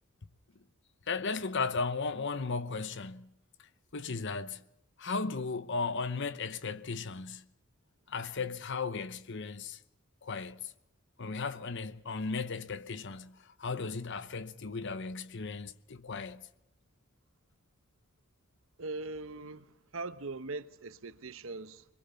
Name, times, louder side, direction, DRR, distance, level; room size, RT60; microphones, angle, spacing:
voice 1, 1.1-3.3 3.9-4.6 5.0-7.5 8.1-9.8 10.2-10.7 11.2-16.5, left 4 dB, 55° left, 0.9 m, -36 dB
voice 2, 18.8-21.9, right 3 dB, 65° right, 1.0 m, -41 dB
22.0 x 22.0 x 5.6 m
head